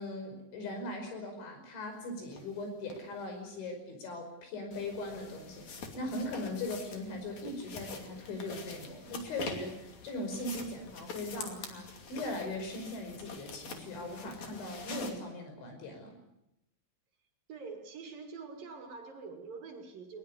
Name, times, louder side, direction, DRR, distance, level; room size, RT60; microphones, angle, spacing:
voice 1, 0.0-16.2, left 1 dB, 75° left, 5 dB, 7.7 m, -39 dB
sound 1, 2.3-2.4 2.9-3.0 4.7-15.1, left 4 dB, 45° left, 3.4 m, -45 dB
voice 2, 17.5-20.2, right 4 dB, 55° right, 5 dB, 3.8 m, -45 dB
21.0 x 20.5 x 9.9 m, 0.86 s
omnidirectional pair, 5.4 m